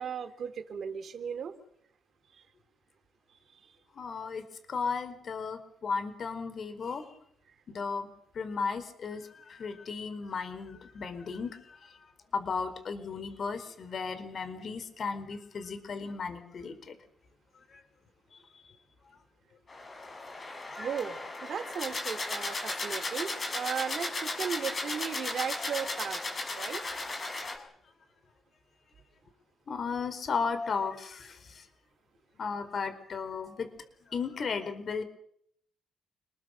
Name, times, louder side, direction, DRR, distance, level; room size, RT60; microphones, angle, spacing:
voice 1, 0.0-1.5 3.3-3.6 20.8-21.2 21.4-26.2 26.6-26.8, right 7 dB, 55° right, 6 dB, 3.4 m, -36 dB
voice 2, 3.9-7.1 7.7-8.1 8.3-12.0 12.3-17.0 17.7-17.8 26.9-27.1 27.5-27.7 29.7-31.7 32.4-33.7 34.1-35.0, left 5 dB, 50° left, 10 dB, 4.7 m, -35 dB
sound 1, 19.7-27.6, left 2 dB, 35° left, 7.1 m, -36 dB
28.5 x 21.5 x 6.7 m, 0.67 s
cardioid pair, 90°, 0 cm